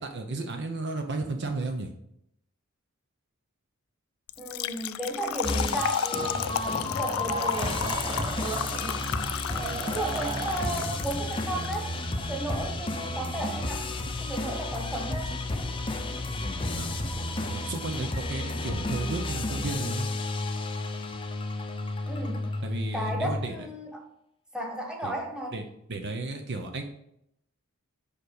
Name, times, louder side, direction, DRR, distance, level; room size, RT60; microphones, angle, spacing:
voice 1, 0.0-1.9 16.8-17.1 17.5-20.1 22.6-23.7 25.0-25.1 25.5-25.6 25.9-26.8, right 3 dB, 55° right, 5 dB, 0.8 m, -33 dB
Trickle dribble / Fill (with liquid), 4.3-11.8, left 9 dB, 75° left, 0.4 m, -33 dB
voice 2, 4.4-9.0 9.5-13.9 14.2-15.4 22.1-22.5 22.9-24.0 24.5-25.6, right 1 dB, 5° right, -1 dB, 1.3 m, -35 dB
sound 1, 5.4-23.4, left 2 dB, 25° left, 0.6 m, -32 dB
Laughter / Crowd, 6.9-12.8, right 4 dB, 25° right, 0.5 m, -37 dB
5.2 x 5.1 x 6.5 m, 0.76 s
head